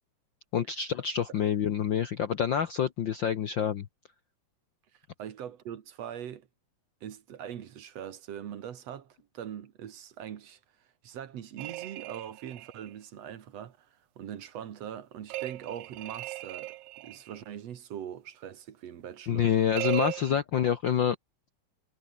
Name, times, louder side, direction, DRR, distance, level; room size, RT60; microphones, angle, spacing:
voice 1, 0.5-3.9 19.3-21.2, left 8 dB, 60° left, 1.2 m, -27 dB
voice 2, 5.2-6.5 7.0-10.6 11.0-13.9 14.2-19.5, right 9 dB, 65° right, 2.5 m, -42 dB
sound 1, 11.6-12.9 15.3-17.4 19.7-20.4, right 17 dB, 85° right, 2.2 m, -37 dB
omnidirectional pair, 3.3 m